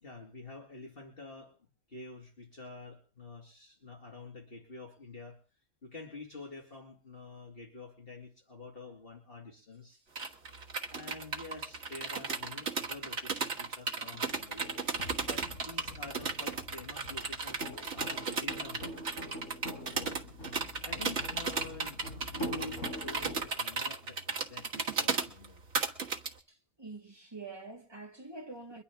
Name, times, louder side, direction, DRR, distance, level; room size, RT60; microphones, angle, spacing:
voice 1, 0.0-5.4 5.8-10.1 10.9-14.7 15.2-19.1 19.8-20.2 20.8-25.6, left 3 dB, 45° left, 2.7 m, -48 dB
sound 1, 10.2-26.3, right 4 dB, 60° right, 1.8 m, -35 dB
sound 2, 14.3-23.5, equal, 85° left, 7.0 m, -44 dB
voice 2, 26.5-28.8, right 3 dB, 20° right, 1.8 m, -46 dB
23.5 x 11.0 x 3.6 m
omnidirectional pair, 1.3 m